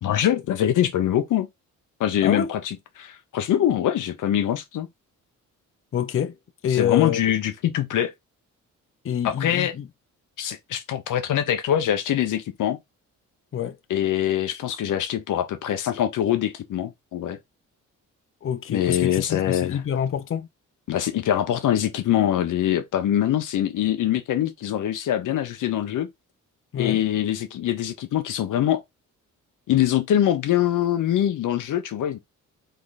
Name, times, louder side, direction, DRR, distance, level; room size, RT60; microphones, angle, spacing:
voice 1, 0.0-1.5 2.0-4.9 6.7-8.1 9.2-9.7 10.4-12.8 13.9-17.4 18.7-19.8 20.9-26.1 26.8-28.8 29.7-32.2, left 11 dB, 75° left, 0.9 m, -23 dB
voice 2, 5.9-6.4 6.6-7.2 9.0-9.9 13.5-13.8 18.4-20.5 26.7-27.0, left 9 dB, 40° left, 0.7 m, -26 dB
3.9 x 3.1 x 4.0 m
cardioid pair, 90°, 31 cm